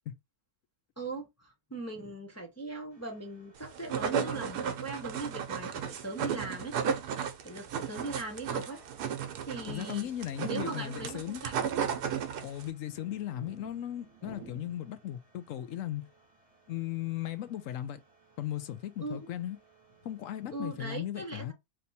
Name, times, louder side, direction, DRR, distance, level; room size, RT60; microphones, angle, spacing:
voice 1, 1.0-6.7 7.4-8.8 9.5-10.1 10.4-11.5 19.0-19.3 20.5-21.5, right 2 dB, 15° left, 0.6 m, -39 dB
sound 1, 2.9-21.0, right 3 dB, 25° right, 1.4 m, -59 dB
sound 2, 3.6-12.7, right 7 dB, 85° right, 1.3 m, -34 dB
voice 2, 9.7-11.4 12.4-16.1 16.7-18.0 18.4-19.6 20.0-21.5, left 12 dB, 70° left, 0.9 m, -37 dB
3.3 x 2.9 x 4.1 m
omnidirectional pair, 1.6 m